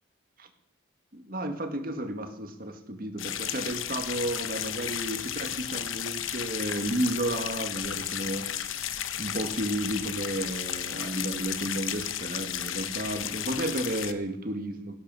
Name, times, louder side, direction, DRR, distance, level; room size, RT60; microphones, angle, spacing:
voice 1, 1.1-8.5 9.2-15.0, right 1 dB, 45° right, 6 dB, 1.9 m, -32 dB
sound 1, 3.2-14.1, left 10 dB, 85° left, 1.0 m, -34 dB
16.0 x 12.0 x 5.6 m, 0.79 s
head